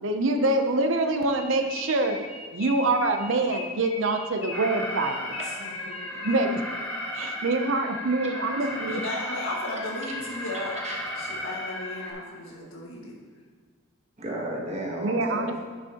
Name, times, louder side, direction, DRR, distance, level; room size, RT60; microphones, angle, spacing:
voice 1, 0.0-2.2 2.5-5.3 6.2-6.6 7.1-9.0 12.6-12.7 15.0-15.6, right 2 dB, 65° right, 6 dB, 0.6 m, -25 dB
sound 1, 1.4-6.7, left 3 dB, 30° left, 0.7 m, -40 dB
Alarm, 4.5-12.1, left 1 dB, 10° left, 1.4 m, -35 dB
voice 2, 5.6-6.3 8.9-10.7 11.2-13.2, left 2 dB, 75° left, -3 dB, 1.7 m, -35 dB
voice 3, 8.6-8.9 10.8-11.4 14.2-15.6, right 1 dB, 30° right, -2 dB, 1.3 m, -35 dB
9.7 x 6.3 x 2.9 m, 1.5 s
head